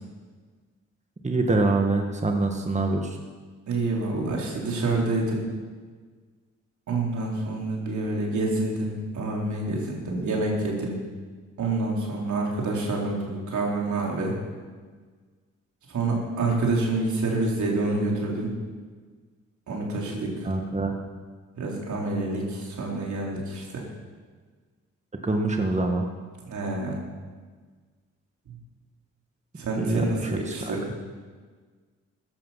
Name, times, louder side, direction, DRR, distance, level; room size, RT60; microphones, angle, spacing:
voice 1, 1.2-3.2 20.1-21.0 25.2-26.1 29.7-30.8, right 2 dB, 25° right, 3 dB, 1.7 m, -25 dB
voice 2, 3.7-5.4 6.9-11.0 11.6-14.3 15.9-18.5 19.7-20.5 21.6-23.8 26.5-27.0 28.5-28.6 29.6-30.8, right 2 dB, 70° right, -2 dB, 3.9 m, -27 dB
14.5 x 11.5 x 5.8 m, 1.5 s
supercardioid pair, 55°, 30 cm